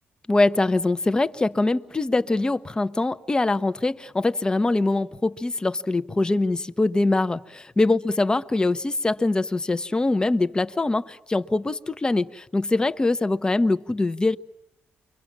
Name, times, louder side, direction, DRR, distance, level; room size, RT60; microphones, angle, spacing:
voice 1, 0.3-14.4, left 2 dB, 20° left, 12 dB, 1.0 m, -23 dB
29.0 x 24.0 x 7.4 m, 0.89 s
cardioid pair, 100°, 4 cm